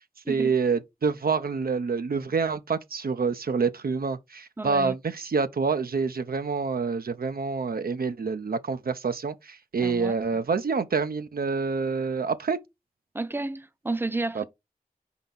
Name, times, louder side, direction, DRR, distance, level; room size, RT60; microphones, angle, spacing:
voice 1, 0.3-12.6 14.4-14.5, right 5 dB, 85° right, 0.5 m, -27 dB
voice 2, 4.6-5.0 9.8-10.2 13.1-14.4, right 2 dB, 15° right, 0.5 m, -31 dB
4.5 x 3.9 x 5.4 m
wide cardioid pair, 40°, 15 cm